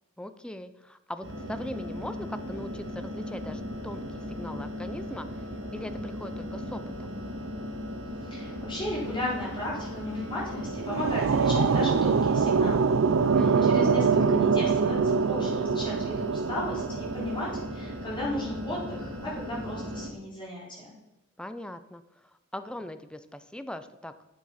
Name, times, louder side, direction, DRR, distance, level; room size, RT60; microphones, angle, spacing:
voice 1, 0.2-5.3 5.7-7.1 13.3-13.8 21.4-22.0 22.5-24.1, left 1 dB, 5° left, 10 dB, 0.5 m, -40 dB
sound 1, 1.2-20.1, equal, 60° right, 1.8 m, -37 dB
voice 2, 8.2-12.9 13.4-20.9, left 1 dB, 25° left, -5 dB, 3.9 m, -35 dB
sound 2, 10.5-17.7, right 5 dB, 80° right, 0.5 m, -24 dB
8.5 x 7.3 x 5.7 m, 0.97 s
head